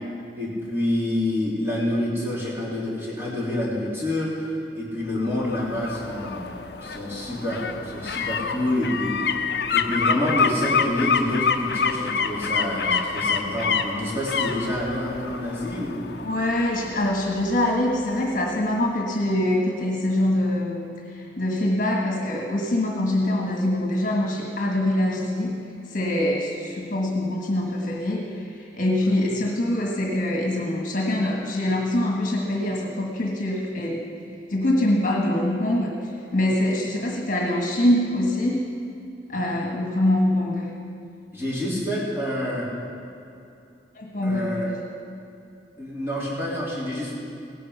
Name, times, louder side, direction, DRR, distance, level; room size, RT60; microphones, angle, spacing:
voice 1, 0.4-4.5 4.8-6.4 6.8-9.4 9.7-16.0 29.0-29.1 41.3-42.7 44.2-44.7 45.8-47.1, left 1 dB, 15° right, -7 dB, 3.5 m, -27 dB
sound 1, 5.2-18.0 18.4-18.5, left 5 dB, 60° left, 0.7 m, -27 dB
voice 2, 16.2-25.6 25.9-34.0 34.5-35.9 36.3-38.6 39.3-40.7 43.9-44.8, left 1 dB, 45° left, 0 dB, 1.7 m, -24 dB
18.0 x 10.0 x 5.9 m, 2.6 s
head